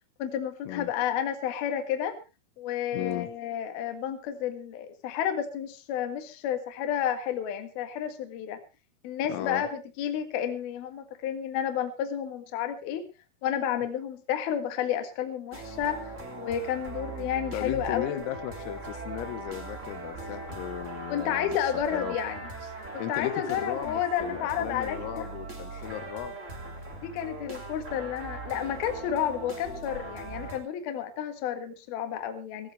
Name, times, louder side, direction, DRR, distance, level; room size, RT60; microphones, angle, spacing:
voice 1, 0.2-2.2 2.6-8.6 9.0-13.0 13.4-18.2 21.1-22.4 23.1-25.3 25.7-25.9 27.0-32.7, left 9 dB, 60° left, 6 dB, 3.0 m, -31 dB
voice 2, 2.9-3.3 9.3-9.7 17.5-22.2 23.0-26.4, left 12 dB, 85° left, 9 dB, 4.0 m, -36 dB
sound 1, 15.5-30.6, right 3 dB, 20° right, 2.0 m, -40 dB
18.0 x 16.0 x 3.3 m, 0.29 s
omnidirectional pair, 6.0 m